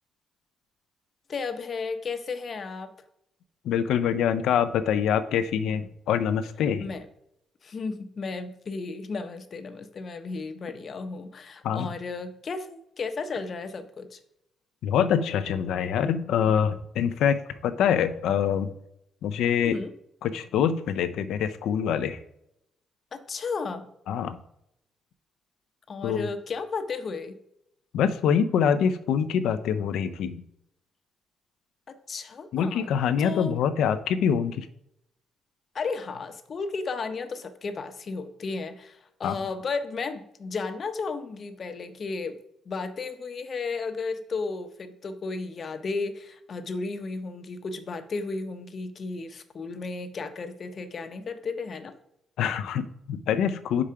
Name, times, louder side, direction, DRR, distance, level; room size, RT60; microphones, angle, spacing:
voice 1, 1.3-2.9 6.8-7.1 7.6-14.2 19.6-19.9 23.1-23.9 25.9-27.3 31.9-32.9 33.2-33.6 35.7-42.4 42.7-51.9, left 4 dB, 45° left, 9 dB, 0.8 m, -34 dB
voice 2, 3.6-6.9 11.6-11.9 14.8-18.7 19.2-19.8 20.2-22.2 24.1-24.4 26.0-26.3 27.9-30.4 32.5-34.7 39.2-39.3 52.4-53.8, left 8 dB, 80° left, 12 dB, 0.5 m, -25 dB
5.0 x 4.8 x 5.6 m, 0.80 s
cardioid pair, 90°, 0 cm